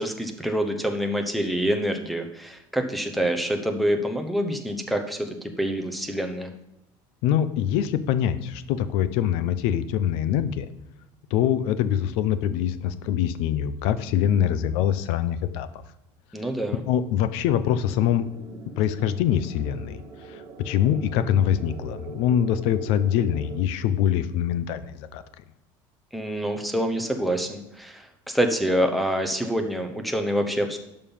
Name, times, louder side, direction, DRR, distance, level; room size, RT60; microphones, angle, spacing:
voice 1, 0.0-6.5 16.3-16.8 26.1-30.8, equal, ahead, 6 dB, 0.8 m, -26 dB
voice 2, 7.2-10.7 11.3-15.7 16.9-18.3 18.8-25.2, left 10 dB, 65° left, 13 dB, 0.7 m, -24 dB
sound 1, 17.8-23.6, right 4 dB, 35° right, 1.3 m, -42 dB
11.5 x 5.5 x 5.5 m, 0.90 s
cardioid pair, 170°, 11 cm